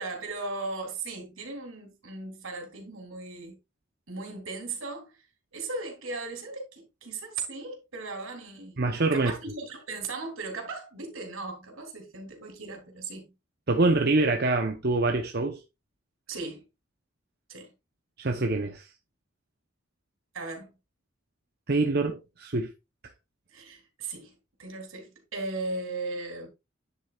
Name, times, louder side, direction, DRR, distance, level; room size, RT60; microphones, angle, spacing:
voice 1, 0.0-3.5 4.1-5.1 5.5-8.8 9.1-13.3 16.3-16.6 17.5-17.7 20.3-20.7 23.5-24.3 24.6-26.5, right 3 dB, 80° right, 3.4 m, -37 dB
voice 2, 8.8-9.3 13.7-15.6 18.2-18.9 21.7-22.7, right 2 dB, 50° right, 0.9 m, -25 dB
10.0 x 7.4 x 2.4 m
head